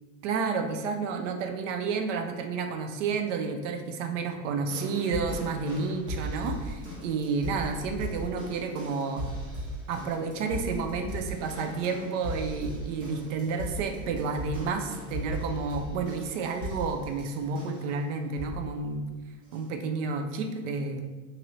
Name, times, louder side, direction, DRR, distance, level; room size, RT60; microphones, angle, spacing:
voice 1, 0.2-9.2 9.9-19.1 19.5-21.0, right 4 dB, 55° right, 6 dB, 0.5 m, -31 dB
sound 1, 4.7-17.9 18.3-18.7 19.5-19.6, equal, 35° right, 1.1 m, -38 dB
3.0 x 2.7 x 4.0 m, 1.3 s
supercardioid pair, 175°, 45 cm